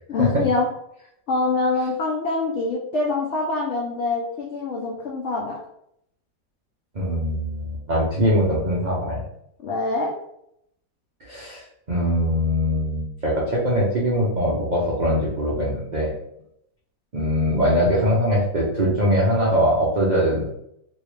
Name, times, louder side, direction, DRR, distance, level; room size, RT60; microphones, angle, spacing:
voice 1, 0.1-0.7 1.3-5.6 9.6-10.1, left 3 dB, 85° left, -2 dB, 0.6 m, -24 dB
voice 2, 6.9-9.2 11.2-16.1 17.1-20.4, equal, 80° right, -6 dB, 0.4 m, -22 dB
3.1 x 2.8 x 3.2 m, 0.75 s
omnidirectional pair, 1.9 m